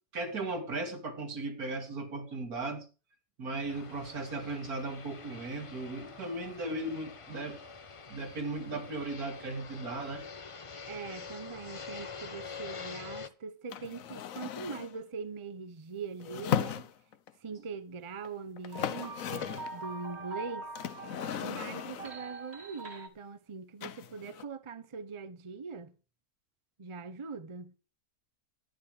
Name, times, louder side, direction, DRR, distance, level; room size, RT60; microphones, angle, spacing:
voice 1, 0.1-2.9 3.4-7.6 8.1-10.3 10.7-10.8, right 2 dB, 75° right, 2.7 m, -37 dB
Fixed-wing aircraft airplane, 3.7-13.3, left 5 dB, 35° left, 0.5 m, -46 dB
voice 2, 10.9-16.9 17.4-20.7 21.4-25.9 26.8-27.7, right 5 dB, 30° right, 0.6 m, -42 dB
sound 1, 13.7-15.0 16.2-17.3 18.2-18.3 18.6-19.8 20.7-22.2 23.8-24.4, left 9 dB, 65° left, 1.1 m, -36 dB
sound 2, 18.7-23.1, right 3 dB, 45° right, 1.9 m, -43 dB
11.5 x 10.0 x 5.0 m
omnidirectional pair, 1.6 m